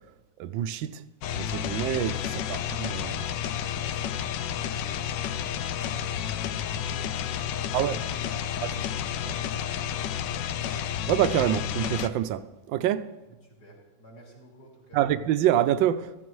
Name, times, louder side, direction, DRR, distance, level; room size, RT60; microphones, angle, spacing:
voice 1, 0.4-1.0 1.3-3.2 7.7-8.0 8.6-8.8 9.3-9.4 11.1-13.1 14.9-16.1, right 11 dB, 85° right, 1.3 m, -26 dB
sound 1, 1.2-12.1, left 9 dB, 75° left, 1.2 m, -31 dB
voice 2, 3.7-9.7 10.0-10.5 13.4-15.0, right 1 dB, 60° left, 3.5 m, -53 dB
15.0 x 13.0 x 3.1 m
omnidirectional pair, 2.0 m